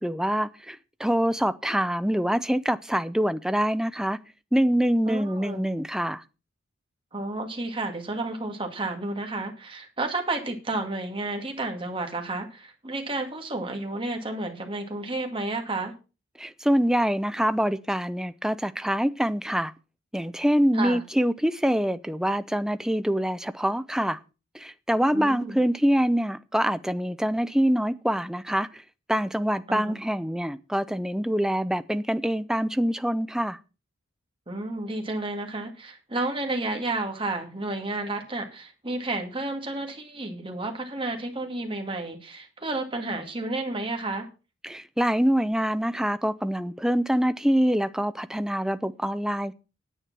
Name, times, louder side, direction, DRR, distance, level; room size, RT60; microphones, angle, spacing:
voice 1, 0.0-4.2 4.5-6.2 16.4-19.7 20.1-24.2 24.5-28.8 29.1-33.6 44.6-49.5, equal, 5° right, 0.6 m, -25 dB
voice 2, 5.1-5.6 7.1-15.9 20.7-21.0 25.1-25.6 29.7-30.0 34.5-44.3, right 2 dB, 25° right, 2.3 m, -31 dB
10.0 x 8.5 x 6.0 m
head